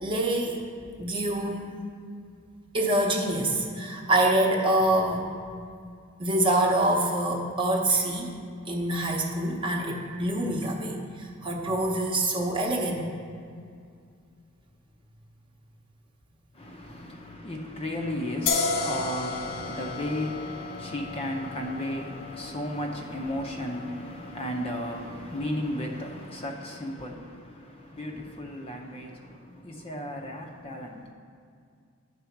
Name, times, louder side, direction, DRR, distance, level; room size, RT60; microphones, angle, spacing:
voice 1, 0.0-0.6 1.0-1.7 2.7-5.2 6.2-8.3 8.7-13.1, right 1 dB, 25° right, 0.9 m, -26 dB
voice 2, 16.5-31.1, left 1 dB, 30° left, 0.6 m, -34 dB
sound 1, 18.5-25.8, left 4 dB, 60° left, 0.7 m, -34 dB
10.5 x 4.1 x 5.8 m
head